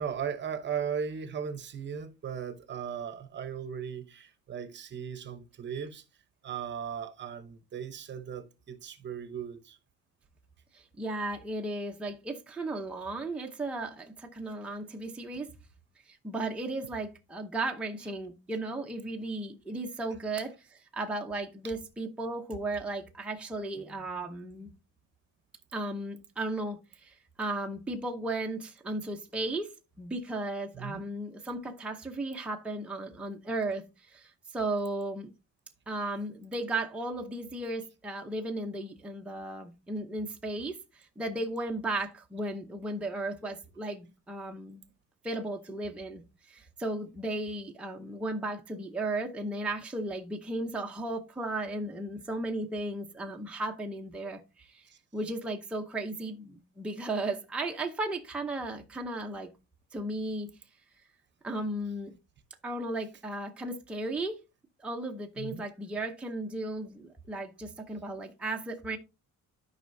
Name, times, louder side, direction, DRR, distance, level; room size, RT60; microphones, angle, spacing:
voice 1, 0.0-6.0 6.4-9.8 30.7-31.1 65.4-65.7, right 7 dB, 35° right, 0.8 m, -37 dB
voice 2, 10.7-15.5 16.1-24.7 25.7-29.7 30.0-33.8 34.1-35.3 35.9-44.8 45.2-46.2 46.5-54.8 55.1-59.5 59.9-60.5 61.4-62.1 62.6-64.4 64.8-69.0, right 2 dB, 5° right, 0.7 m, -35 dB
12.5 x 5.5 x 2.6 m
cardioid pair, 180°, 31 cm